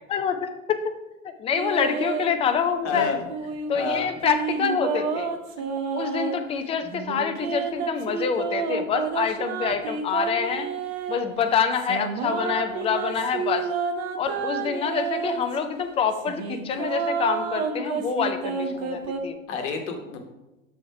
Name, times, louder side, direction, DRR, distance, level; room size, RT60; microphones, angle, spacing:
voice 1, 0.1-0.8 1.2-3.2 3.7-5.6 5.9-10.7 11.1-13.7 14.2-19.4, left 6 dB, 15° left, 8 dB, 0.4 m, -26 dB
sound 1, 1.6-2.3 2.9-6.4 6.9-11.2 11.7-15.6 16.1-19.2, right 6 dB, 50° right, 0.8 m, -30 dB
voice 2, 2.8-3.2 3.7-4.1 19.5-20.2, left 6 dB, 60° left, 4 dB, 1.2 m, -29 dB
6.3 x 4.3 x 4.6 m, 1.0 s
figure-of-eight pair, 85°, 40 cm